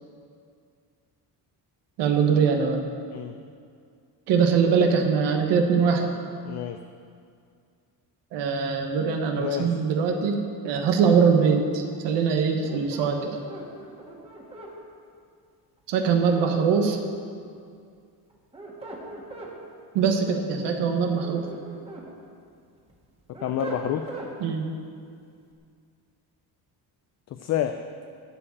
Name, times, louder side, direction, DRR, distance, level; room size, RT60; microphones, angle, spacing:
voice 1, 2.0-2.8 4.3-6.1 8.3-10.4 10.6-13.4 15.9-17.0 19.9-21.5 24.4-24.7, right 6 dB, 90° right, 4 dB, 1.3 m, -22 dB
voice 2, 6.4-6.8 9.4-9.7 23.4-24.1 27.3-27.9, left 10 dB, 45° left, 8 dB, 0.4 m, -28 dB
sound 1, 12.6-14.7 16.0-17.1 18.3-19.5 21.0-22.1 22.5-24.3, right 2 dB, 15° right, 1.6 m, -40 dB
12.0 x 4.8 x 8.5 m, 2.3 s
cardioid pair, 140°, 40 cm